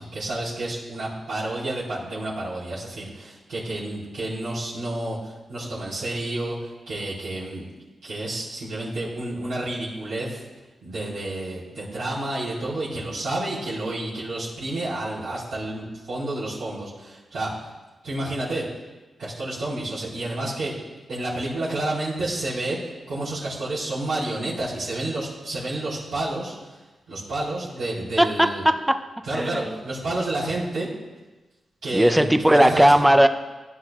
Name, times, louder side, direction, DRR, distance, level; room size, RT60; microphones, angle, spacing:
voice 1, 0.0-7.7 8.0-10.4 10.8-17.5 18.0-18.6 19.2-20.7 21.1-26.7 27.1-28.6 29.3-30.9 31.8-33.1, right 2 dB, 85° right, -11 dB, 4.1 m, -30 dB
voice 2, 28.2-29.0 29.3-29.8 31.9-33.3, equal, 5° right, 8 dB, 0.7 m, -18 dB
16.0 x 10.0 x 2.5 m, 1.2 s
cardioid pair, 60°, 0 cm